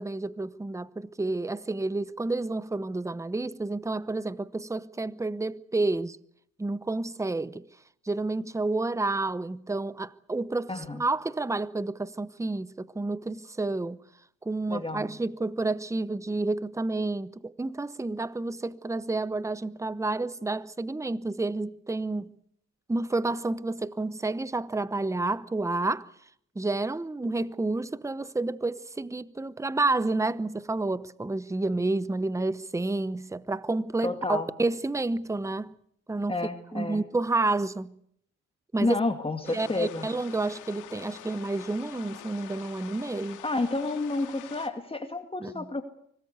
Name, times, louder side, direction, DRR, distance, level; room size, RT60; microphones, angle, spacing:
voice 1, 0.0-6.2 6.6-7.7 8.1-14.0 14.4-22.4 22.9-26.1 26.5-35.7 36.1-36.4 36.7-38.0 38.7-39.0 39.5-43.4 45.4-45.7, right 2 dB, 10° right, 0.9 m, -30 dB
voice 2, 10.7-11.0 14.7-15.1 34.0-34.5 36.3-37.0 38.8-40.1 43.4-45.8, left 2 dB, 20° left, 2.2 m, -30 dB
sound 1, 39.4-44.7, left 12 dB, 90° left, 2.1 m, -46 dB
25.0 x 19.0 x 8.1 m
cardioid pair, 90°, 30 cm